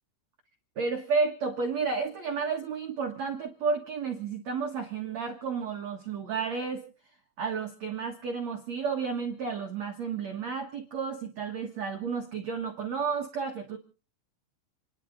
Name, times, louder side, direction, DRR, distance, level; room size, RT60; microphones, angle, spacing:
voice 1, 0.7-6.9 7.4-13.8, right 5 dB, 70° right, 2 dB, 1.6 m, -32 dB
30.0 x 11.0 x 3.9 m, 0.38 s
omnidirectional pair, 5.8 m